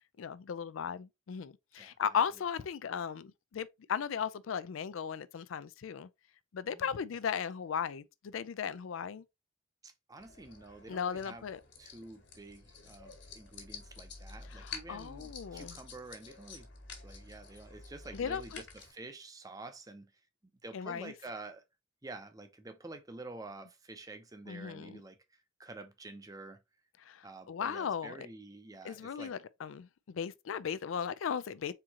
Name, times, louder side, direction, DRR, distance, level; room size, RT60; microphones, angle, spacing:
voice 1, 0.2-6.1 6.5-9.2 10.9-11.6 14.5-15.8 18.1-18.6 20.7-21.1 24.5-25.0 27.1-28.2 28.8-31.7, left 7 dB, 85° left, 0.4 m, -36 dB
voice 2, 6.7-7.1 9.8-11.5 11.8-16.7 17.0-20.1 20.6-21.6 22.0-26.6 27.2-29.4, right 2 dB, 20° right, 0.6 m, -49 dB
sound 1, 10.2-18.9, left 4 dB, 60° left, 1.7 m, -49 dB
4.5 x 3.7 x 2.9 m
head